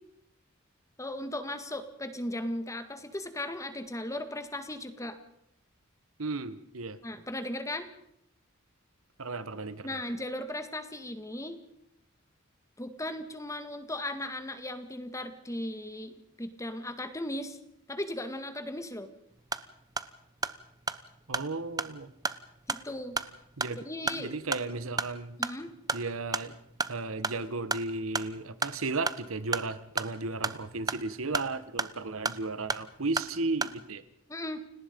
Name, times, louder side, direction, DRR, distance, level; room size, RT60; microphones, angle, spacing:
voice 1, 1.0-5.2 7.0-7.9 9.8-11.6 12.8-17.6 17.9-19.1 22.7-23.2 23.9-24.3 25.4-25.7 34.3-34.6, left 1 dB, 15° left, 9 dB, 1.9 m, -37 dB
voice 2, 6.2-7.0 9.2-10.0 21.3-22.1 23.6-25.4 25.9-26.5 26.9-34.0, right 3 dB, 80° right, 14 dB, 1.3 m, -35 dB
sound 1, 19.3-33.8, right 3 dB, 20° right, 0.9 m, -36 dB
29.5 x 18.0 x 5.3 m, 0.75 s
head